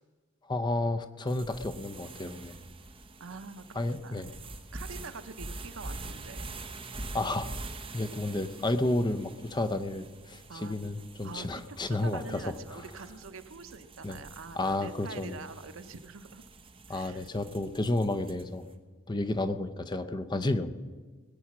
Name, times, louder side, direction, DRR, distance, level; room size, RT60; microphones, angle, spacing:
voice 1, 0.5-2.6 3.7-4.3 7.1-7.5 7.9-12.5 14.0-14.2 14.6-15.4 16.9-18.7 19.1-20.7, left 2 dB, 20° left, 10 dB, 0.6 m, -31 dB
sound 1, 1.3-18.6, right 2 dB, 25° right, 1.1 m, -45 dB
voice 2, 3.2-4.3 4.7-6.5 10.5-10.8 11.2-16.4 16.9-17.3, right 4 dB, 75° right, 11 dB, 0.8 m, -45 dB
20.0 x 8.5 x 6.0 m, 1.4 s
head